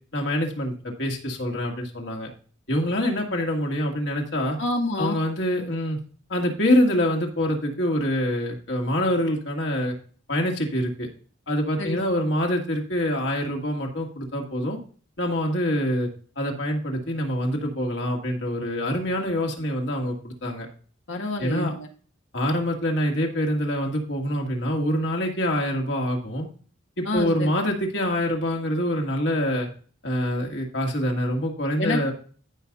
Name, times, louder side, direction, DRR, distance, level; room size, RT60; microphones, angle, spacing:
voice 1, 0.1-2.3 2.7-4.6 5.0-6.0 6.3-9.9 10.3-11.1 11.5-14.8 15.2-16.1 16.4-20.7 21.4-21.7 22.3-26.5 27.0-29.7 30.0-32.1, equal, 75° left, 0 dB, 2.3 m, -25 dB
voice 2, 4.6-5.2 11.8-12.0 21.1-21.9 27.1-27.5 31.8-32.1, left 2 dB, 90° left, 2 dB, 1.9 m, -27 dB
14.5 x 5.5 x 2.5 m, 0.42 s
head